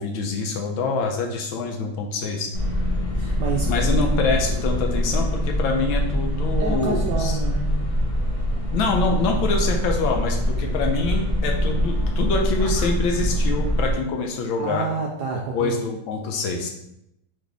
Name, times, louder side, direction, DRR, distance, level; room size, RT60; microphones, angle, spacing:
voice 1, 0.0-2.5 3.7-7.3 8.7-14.9 15.5-16.7, left 3 dB, 75° left, 2 dB, 1.3 m, -25 dB
sound 1, 2.5-13.9, equal, 55° left, 0.3 m, -24 dB
voice 2, 3.2-3.7 6.6-7.6 14.6-15.8, right 5 dB, 75° right, -1 dB, 0.9 m, -28 dB
4.0 x 3.6 x 3.4 m, 0.81 s
omnidirectional pair, 2.3 m